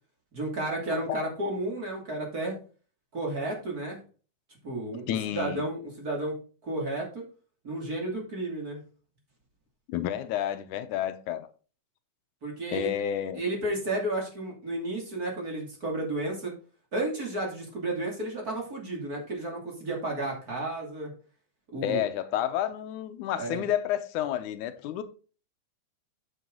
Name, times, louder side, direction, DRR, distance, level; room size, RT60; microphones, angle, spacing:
voice 1, 0.3-2.6 3.1-4.0 4.6-7.2 7.6-8.8 12.4-12.9 13.3-16.5 16.9-21.1 21.7-22.0 23.3-23.7, right 2 dB, 30° right, 2.8 m, -32 dB
voice 2, 0.9-1.3 5.1-5.6 9.9-11.5 12.7-13.4 21.8-25.0, left 11 dB, 90° left, 2.2 m, -30 dB
8.4 x 7.1 x 3.8 m
omnidirectional pair, 3.5 m